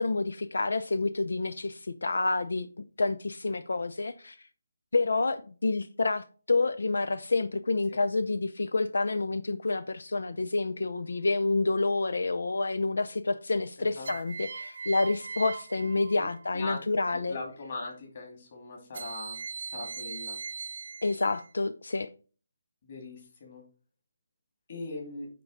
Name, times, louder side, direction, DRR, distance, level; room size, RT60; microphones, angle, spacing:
voice 1, 0.0-2.7 3.0-4.4 4.9-17.4 21.0-22.1, left 3 dB, 75° left, 0.5 m, -28 dB
sound 1, 10.9-11.5 14.0-16.7 18.9-21.5, right 5 dB, 40° right, 0.4 m, -40 dB
voice 2, 13.8-14.1 16.2-16.3 16.5-16.8 17.1-19.4 19.7-20.4 22.9-23.6 24.7-25.3, left 3 dB, 30° left, 2.4 m, -40 dB
9.3 x 3.7 x 4.9 m
hypercardioid pair, 180°, 0 cm